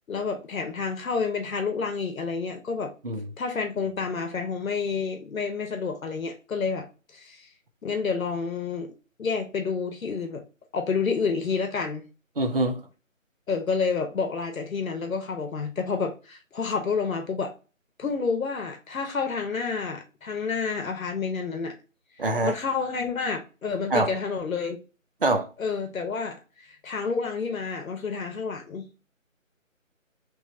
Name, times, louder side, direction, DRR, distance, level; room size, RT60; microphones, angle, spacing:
voice 1, 0.1-2.9 3.4-6.9 7.1-7.5 7.8-8.9 9.2-10.4 10.7-12.0 13.5-17.5 18.0-21.7 22.4-24.8 25.6-28.9, left 5 dB, 80° left, 0.9 m, -29 dB
voice 2, 12.4-12.8 22.2-22.5 23.9-24.1 25.2-25.5, right 2 dB, 45° right, 0.4 m, -24 dB
3.1 x 2.4 x 4.1 m
figure-of-eight pair, 170°, 41 cm